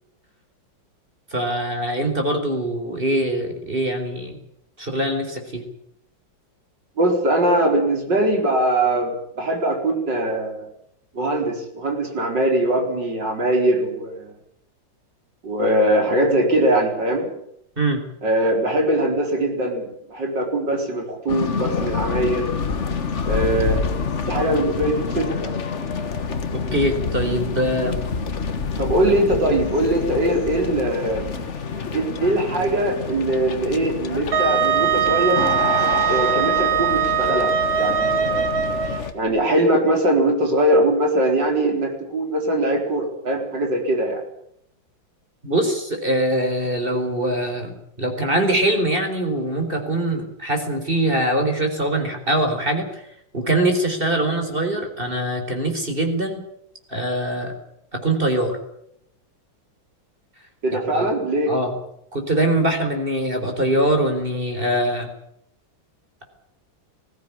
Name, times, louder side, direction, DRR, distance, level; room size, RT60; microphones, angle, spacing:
voice 1, 1.3-4.4 4.8-5.6 17.8-18.0 26.5-28.0 45.4-53.0 53.3-56.4 56.9-57.5 57.9-58.6 60.7-61.1 61.5-61.7 62.1-65.1, right 1 dB, 25° right, 5 dB, 4.4 m, -23 dB
voice 2, 7.0-10.7 11.1-14.3 15.4-17.3 18.2-22.4 23.2-23.8 24.3-25.5 28.8-31.3 31.9-35.4 36.1-37.5 37.8-38.5 39.1-44.2 60.6-61.5, right 1 dB, 65° right, 2 dB, 5.1 m, -21 dB
sound 1, 21.3-39.1, left 5 dB, 40° left, 1.5 m, -27 dB
Wind instrument woodwind instrument, 34.3-39.0, right 7 dB, 80° right, 2.5 m, -21 dB
21.0 x 16.0 x 9.9 m, 0.74 s
omnidirectional pair, 2.1 m